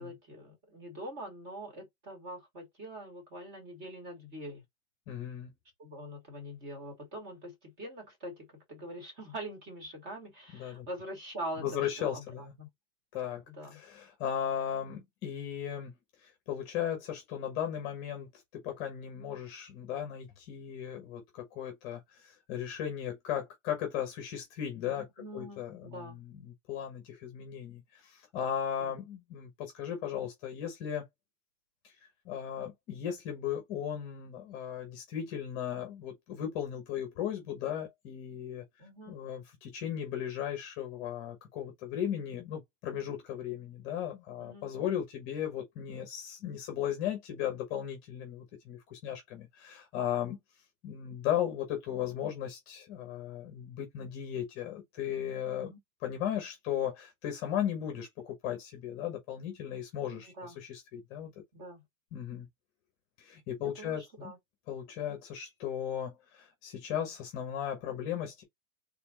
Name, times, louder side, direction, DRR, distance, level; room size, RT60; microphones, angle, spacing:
voice 1, 0.0-4.6 5.8-12.2 12.6-12.7 13.5-13.8 24.9-26.2 28.8-28.9 38.8-39.2 44.4-44.7 55.6-55.8 60.4-60.6 61.5-61.8 63.6-64.4, right 1 dB, 25° right, 2.4 m, -44 dB
voice 2, 5.1-5.5 10.5-10.9 11.6-12.5 13.1-13.4 13.7-15.9 16.2-25.0 25.3-31.1 31.8-31.9 32.2-38.6 39.1-50.4 50.8-55.7 56.0-61.3 62.1-62.5 63.2-64.3 64.7-68.4, left 10 dB, 25° left, 1.0 m, -36 dB
4.2 x 3.5 x 2.9 m
supercardioid pair, 175°, 41 cm